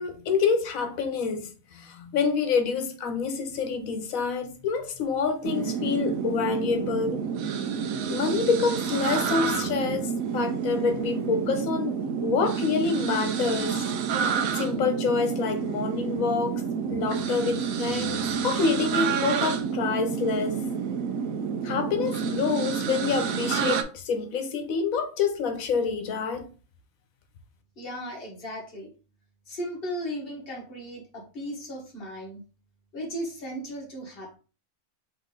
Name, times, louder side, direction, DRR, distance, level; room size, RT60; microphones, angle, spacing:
voice 1, 0.0-7.3 8.1-13.8 14.5-16.6 16.9-20.6 21.6-26.5, left 5 dB, 85° left, 1.2 m, -27 dB
sound 1, 5.4-23.8, right 6 dB, 90° right, 1.0 m, -29 dB
voice 2, 27.8-28.9 29.5-32.4 32.9-34.4, equal, 45° left, 1.5 m, -36 dB
3.8 x 3.1 x 3.7 m
omnidirectional pair, 1.4 m